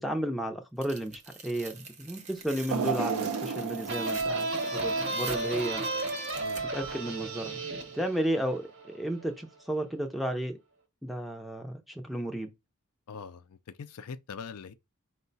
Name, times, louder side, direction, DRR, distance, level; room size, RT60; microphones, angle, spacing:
voice 1, 0.0-5.8 6.7-7.6 7.9-10.6 11.0-12.5, right 1 dB, ahead, 0.5 m, -33 dB
Tearing, 0.8-6.9, right 4 dB, 30° right, 0.7 m, -46 dB
sound 1, 2.7-5.8 6.3-6.4 7.4-7.5, right 5 dB, 80° right, 0.5 m, -34 dB
sound 2, 3.9-9.3, right 2 dB, 55° right, 1.0 m, -33 dB
voice 2, 13.1-14.7, left 5 dB, 80° left, 0.4 m, -43 dB
4.6 x 2.1 x 4.0 m
head